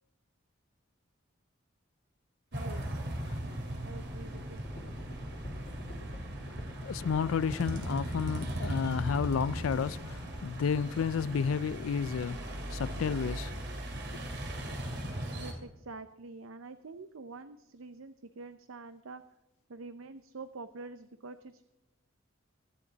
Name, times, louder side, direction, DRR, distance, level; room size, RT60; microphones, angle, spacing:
sound 1, 2.5-15.5, right 1 dB, 55° right, 2.7 m, -38 dB
voice 1, 2.5-3.0 3.8-4.9 15.3-19.2 19.7-21.7, right 3 dB, 85° right, 0.6 m, -46 dB
sound 2, 4.6-10.4, equal, 45° left, 2.5 m, -47 dB
voice 2, 6.5-13.5 14.1-14.2, left 6 dB, 85° left, 0.4 m, -32 dB
24.0 x 10.0 x 4.0 m
head